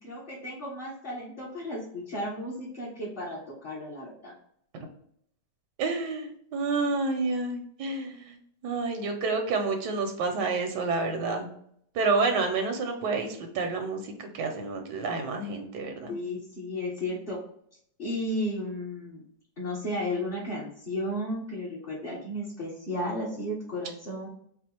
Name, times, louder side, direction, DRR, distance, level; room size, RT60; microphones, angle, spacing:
voice 1, 0.0-4.3 16.1-17.4 18.0-19.2 19.6-24.3, left 1 dB, 35° left, -7 dB, 1.2 m, -34 dB
voice 2, 5.8-11.5 11.9-16.2, right 3 dB, 85° right, 5 dB, 1.3 m, -29 dB
4.4 x 2.4 x 4.2 m, 0.67 s
omnidirectional pair, 1.8 m